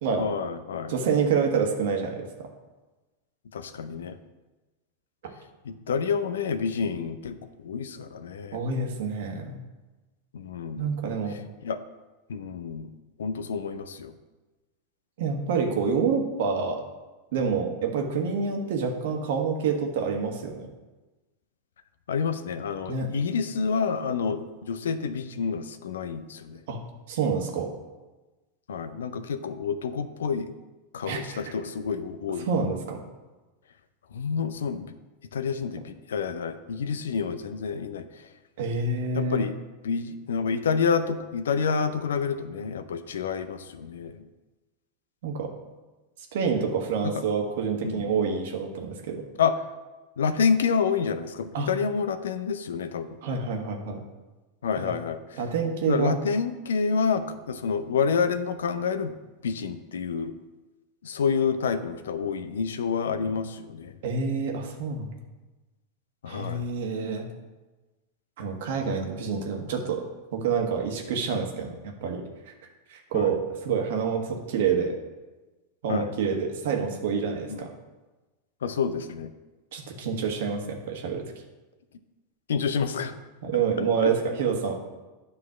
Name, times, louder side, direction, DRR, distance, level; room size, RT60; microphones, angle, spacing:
voice 1, 0.1-0.9 3.5-4.2 5.7-8.6 10.3-10.9 11.6-11.8 12.3-12.9 13.2-14.1 22.1-26.6 28.7-30.5 30.9-32.5 34.1-34.9 35.3-38.1 39.1-39.5 39.8-44.2 47.8-48.1 49.4-49.5 50.2-53.1 54.6-55.4 55.9-59.1 59.4-60.3 61.0-63.9 66.2-66.6 73.1-73.3 75.9-76.1 77.5-77.6 78.6-79.3 82.5-83.1 83.8-84.1, left 6 dB, 80° left, 10 dB, 0.5 m, -28 dB
voice 2, 0.9-2.5 5.2-5.3 8.5-9.6 10.8-11.3 15.2-16.8 17.3-20.7 22.9-23.1 26.7-26.8 27.1-27.7 31.1-31.5 32.4-33.0 38.6-39.5 45.2-45.5 46.3-49.2 51.5-51.7 53.2-54.0 54.8-54.9 55.4-56.2 64.0-65.2 66.3-67.3 68.4-70.0 70.3-72.5 72.9-74.9 75.8-77.7 79.7-81.2 83.4-84.7, right 5 dB, 70° right, 3 dB, 1.3 m, -27 dB
9.6 x 3.2 x 6.0 m, 1.2 s
hypercardioid pair, 100°, 0 cm